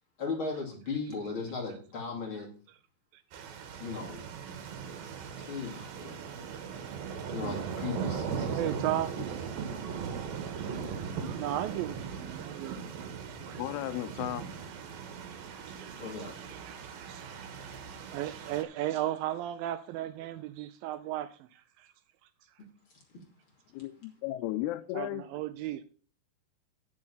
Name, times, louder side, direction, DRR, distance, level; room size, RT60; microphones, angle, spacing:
voice 1, 0.2-2.5 3.8-4.2 5.4-6.2 7.3-9.0 10.1-10.2 16.0-16.3 22.6-22.7, left 4 dB, 35° left, 2.6 m, -37 dB
sound 1, 3.3-18.6, right 6 dB, 70° right, 2.9 m, -39 dB
voice 2, 8.5-9.1 10.3-13.1 13.5-13.6 15.3-15.4 15.7-16.0 16.4-17.4 18.1-21.9 24.9-25.8, right 13 dB, 90° right, 2.0 m, -36 dB
voice 3, 13.6-14.5 23.7-25.2, left 14 dB, 80° left, 2.5 m, -35 dB
10.5 x 6.4 x 5.6 m
omnidirectional pair, 4.7 m